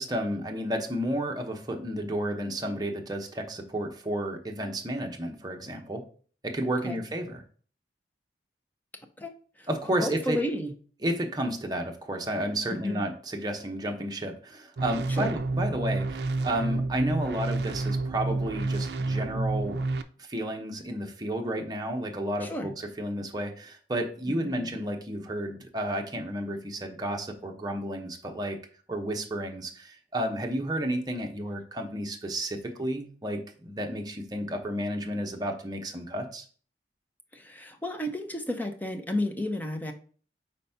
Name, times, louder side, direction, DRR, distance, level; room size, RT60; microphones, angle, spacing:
voice 1, 0.0-6.0 6.4-7.4 9.7-10.4 11.0-19.8 20.2-22.7 23.0-28.6 28.9-36.4, right 1 dB, 25° right, 3 dB, 0.9 m, -32 dB
voice 2, 9.2-9.7 10.0-10.7 12.7-13.0 15.1-15.3 22.4-22.7 24.3-24.8 37.3-39.9, left 1 dB, 10° left, 5 dB, 0.6 m, -32 dB
sound 1, 14.8-20.0, right 2 dB, 60° right, 0.4 m, -29 dB
4.4 x 4.0 x 5.6 m, 0.43 s
head